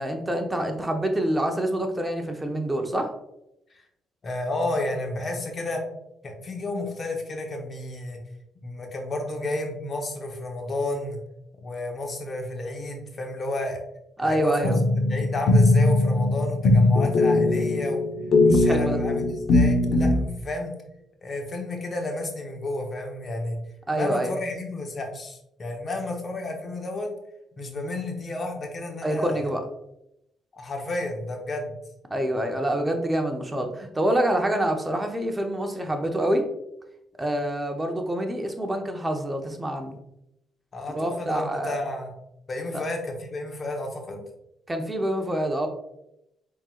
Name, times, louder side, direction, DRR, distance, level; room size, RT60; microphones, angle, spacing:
voice 1, 0.0-3.1 14.2-14.8 18.6-19.0 23.9-24.3 29.0-29.6 32.1-36.5 37.2-40.0 40.9-41.8 42.7-42.8 44.7-45.7, right 1 dB, 15° right, 4 dB, 0.8 m, -26 dB
voice 2, 4.2-5.8 6.2-8.2 8.6-11.2 11.6-13.8 14.2-18.0 18.4-20.7 21.2-23.6 23.9-27.1 27.6-29.4 30.5-31.7 40.7-42.1 42.5-44.2, left 2 dB, 40° left, 2 dB, 1.0 m, -31 dB
sound 1, 14.6-20.2, left 2 dB, 65° left, 0.9 m, -20 dB
4.4 x 3.7 x 2.4 m, 0.83 s
cardioid pair, 90°, 0 cm